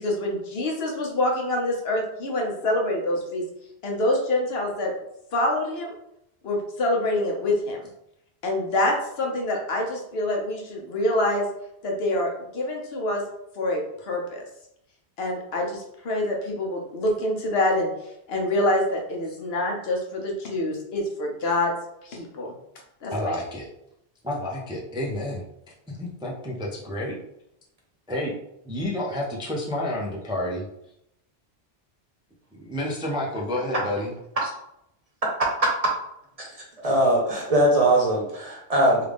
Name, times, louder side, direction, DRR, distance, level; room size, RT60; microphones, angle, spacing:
voice 1, 0.0-3.4 3.8-4.9 5.3-5.9 6.4-7.8 8.4-11.4 11.8-13.2 13.6-14.4 15.2-17.9 18.3-21.7 22.0-22.5 23.0-23.3, left 1 dB, 70° left, 0 dB, 1.1 m, -26 dB
voice 2, 23.1-23.7 24.2-25.4 25.9-27.2 28.1-28.3 28.6-30.6 32.5-34.1, left 1 dB, 5° right, -4 dB, 0.4 m, -29 dB
voice 3, 36.8-39.0, right 1 dB, 40° right, -2 dB, 0.8 m, -21 dB
3.4 x 2.4 x 3.4 m, 0.78 s
omnidirectional pair, 1.1 m